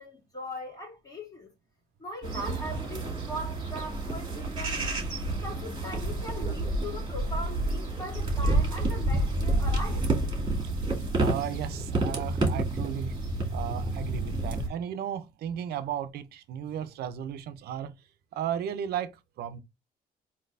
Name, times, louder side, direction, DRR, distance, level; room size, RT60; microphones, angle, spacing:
voice 1, 0.0-1.5 2.0-4.8 5.4-10.0, equal, 20° left, 2.3 m, -40 dB
sound 1, 2.2-14.7, right 2 dB, 25° right, 2.2 m, -29 dB
voice 2, 11.2-13.2 13.5-17.9 18.3-19.6, right 9 dB, 70° right, 0.7 m, -35 dB
4.0 x 2.9 x 3.4 m
cardioid pair, 110°, 17 cm